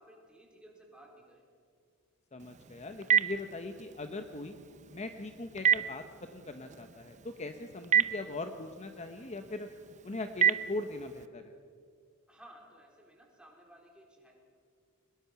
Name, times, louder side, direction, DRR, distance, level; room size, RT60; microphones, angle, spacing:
voice 1, 0.0-1.4 12.3-14.3, right 1 dB, 5° right, -1 dB, 4.0 m, -56 dB
voice 2, 2.3-4.5 4.9-9.7 10.0-11.5, left 2 dB, 30° left, 7 dB, 0.9 m, -40 dB
Telephone, 2.4-11.3, right 8 dB, 35° right, 0.7 m, -33 dB
23.0 x 20.5 x 5.9 m, 2.1 s
head